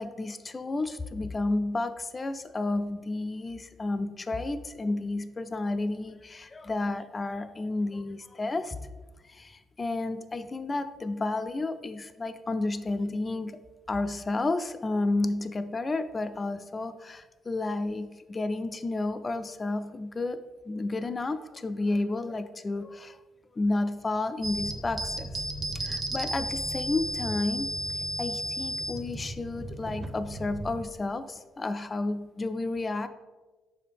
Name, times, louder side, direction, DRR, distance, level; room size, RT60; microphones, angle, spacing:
voice 1, 0.0-8.8 9.2-13.6 13.9-20.4 20.7-23.2 23.5-25.4 25.7-27.7 28.2-33.1, left 2 dB, 30° left, 9 dB, 0.3 m, -31 dB
sound 1, 24.4-30.8, right 1 dB, 20° right, 0.6 m, -34 dB
6.0 x 4.8 x 3.3 m, 1.3 s
cardioid pair, 90°, 0 cm